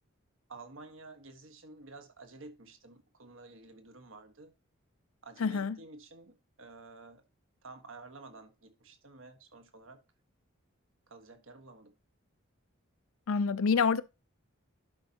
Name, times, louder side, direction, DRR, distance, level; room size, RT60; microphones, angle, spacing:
voice 1, 0.5-4.5 5.2-7.2 7.6-10.0 11.1-11.9, right 3 dB, 70° right, 1.4 m, -51 dB
voice 2, 5.4-5.8 13.3-14.0, left 5 dB, 80° left, 0.5 m, -27 dB
11.5 x 5.4 x 2.9 m
head